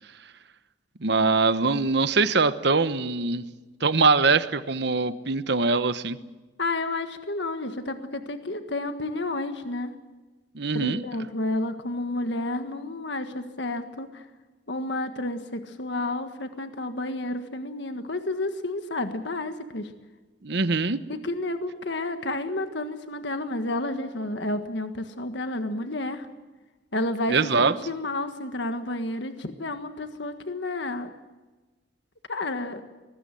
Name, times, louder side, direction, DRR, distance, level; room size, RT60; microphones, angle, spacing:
voice 1, 1.0-3.4 3.8-6.2 10.5-11.0 20.4-21.0 27.3-27.7, right 4 dB, 65° right, 13 dB, 1.1 m, -22 dB
voice 2, 6.6-9.9 10.7-14.2 14.7-19.9 21.1-26.3 26.9-31.1 32.3-32.8, left 2 dB, 70° left, 8 dB, 1.6 m, -31 dB
24.0 x 20.0 x 7.8 m, 1.2 s
head